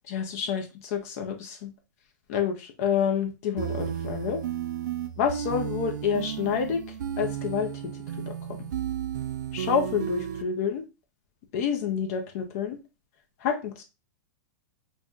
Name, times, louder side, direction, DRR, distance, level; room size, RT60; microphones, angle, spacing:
voice 1, 0.1-1.7 2.3-4.4 5.2-6.8 7.2-7.9 8.3-8.7 9.5-10.8 11.5-12.8 13.4-13.8, left 7 dB, 50° left, 4 dB, 0.5 m, -28 dB
sound 1, 3.6-10.4, right 10 dB, 80° right, 0.4 m, -33 dB
2.6 x 2.1 x 3.4 m, 0.28 s
hypercardioid pair, 145°, 10 cm